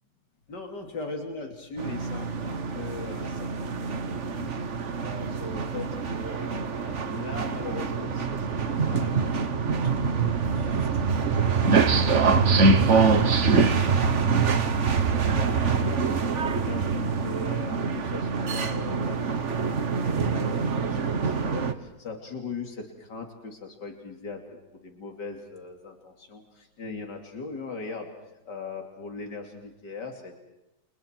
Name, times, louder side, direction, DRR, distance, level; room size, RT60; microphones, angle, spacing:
voice 1, 0.5-4.6 5.0-10.9 11.3-11.5 11.9-14.6 15.0-16.0 16.3-24.6 24.8-28.1 28.5-30.4, left 4 dB, 85° left, 3 dB, 3.4 m, -40 dB
sound 1, 1.8-21.7, right 5 dB, 45° right, 1.5 m, -25 dB
30.0 x 29.0 x 4.6 m, 0.94 s
omnidirectional pair, 1.8 m